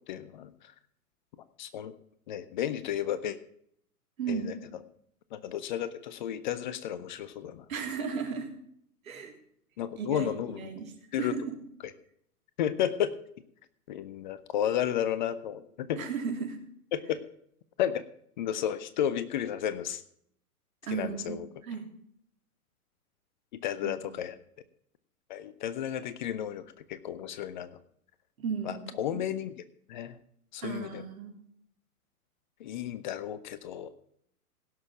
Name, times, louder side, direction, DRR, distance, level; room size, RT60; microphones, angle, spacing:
voice 1, 0.1-0.7 1.6-1.9 2.3-3.4 4.3-4.6 5.3-7.7 9.8-10.6 11.1-11.4 12.6-13.1 13.9-16.0 16.9-17.2 17.8-18.0 18.4-20.0 20.9-21.5 23.5-24.3 25.3-27.7 28.6-29.5 29.9-30.2 30.5-31.0 32.6-33.9, left 10 dB, 30° left, 15 dB, 0.6 m, -32 dB
voice 2, 4.2-4.6 7.7-8.5 9.0-9.3 10.0-10.9 11.2-11.5 16.0-16.6 20.8-21.9 23.8-24.1 28.4-28.8 29.1-29.3 30.6-31.3, right 6 dB, 65° right, 4 dB, 3.1 m, -35 dB
17.0 x 6.4 x 5.9 m, 0.68 s
figure-of-eight pair, 115°, 45 cm